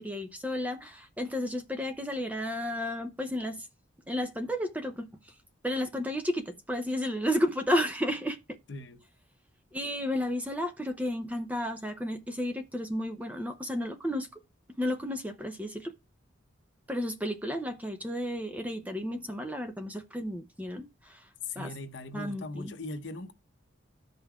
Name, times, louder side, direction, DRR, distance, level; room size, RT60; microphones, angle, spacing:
voice 1, 0.0-3.7 4.1-5.1 5.6-8.6 9.7-14.3 14.8-15.9 16.9-21.3 21.6-21.7 22.1-22.7, equal, 10° right, 0.6 m, -32 dB
voice 2, 8.7-9.0 21.4-23.3, left 3 dB, 65° left, 0.9 m, -39 dB
13.5 x 5.4 x 2.3 m
head